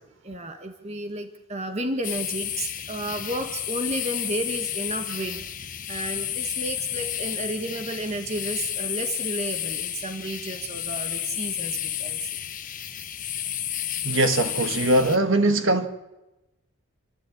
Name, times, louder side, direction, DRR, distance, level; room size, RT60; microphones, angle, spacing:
voice 1, 0.2-5.4 5.9-12.3, right 1 dB, 30° right, 1.5 m, -32 dB
sound 1, 2.0-15.2, left 11 dB, 40° left, 1.1 m, -31 dB
voice 2, 14.0-15.9, right 2 dB, 60° right, 1.9 m, -21 dB
29.5 x 13.0 x 8.7 m
head